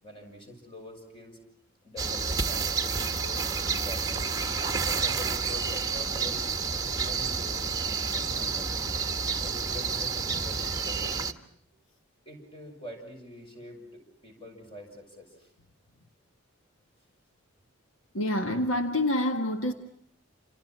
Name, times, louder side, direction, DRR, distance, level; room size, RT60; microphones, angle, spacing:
voice 1, 0.0-1.4 1.8-4.3 4.7-6.4 6.9-8.9 9.4-11.2 12.3-15.5, left 1 dB, 25° left, 7.2 m, -45 dB
sound 1, 2.0-11.3, right 5 dB, 20° right, 1.3 m, -29 dB
voice 2, 18.1-19.7, left 1 dB, 75° left, 1.7 m, -27 dB
29.0 x 29.0 x 6.1 m
head